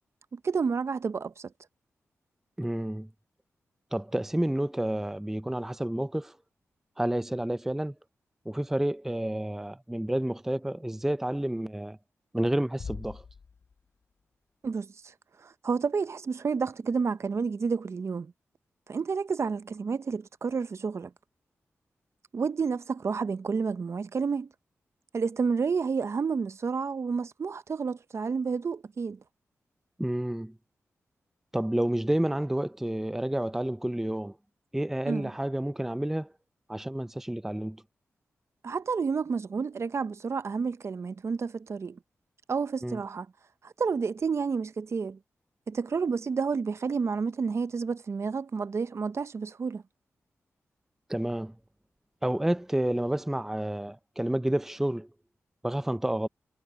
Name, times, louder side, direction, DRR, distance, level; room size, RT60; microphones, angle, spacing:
voice 1, 0.3-1.5 14.6-14.9 15.4-18.3 18.9-21.1 22.3-24.5 25.1-29.2 35.1-35.3 38.6-42.0 42.5-43.3 43.6-45.2 45.7-49.8, right 5 dB, 55° right, 0.8 m, -30 dB
voice 2, 2.6-3.1 3.9-6.4 7.0-7.9 8.5-12.0 12.3-13.2 30.0-30.5 31.5-34.4 34.7-36.3 36.7-37.8 42.8-43.0 51.1-51.5 52.2-55.1 55.6-56.3, right 1 dB, 5° right, 0.5 m, -30 dB
sound 1, 12.8-14.2, left 5 dB, 50° left, 0.4 m, -43 dB
cardioid pair, 55°, 5 cm